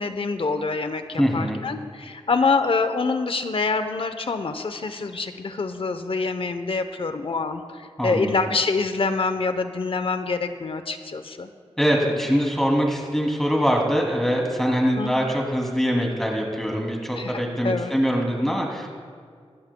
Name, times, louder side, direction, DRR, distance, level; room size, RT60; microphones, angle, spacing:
voice 1, 0.0-11.5 15.0-15.1 17.1-17.9, left 4 dB, 60° left, 9 dB, 0.9 m, -26 dB
voice 2, 1.2-1.6 8.0-8.3 11.8-18.9, equal, 5° left, 0 dB, 2.8 m, -23 dB
19.5 x 13.0 x 2.3 m, 2.1 s
cardioid pair, 50°, 11 cm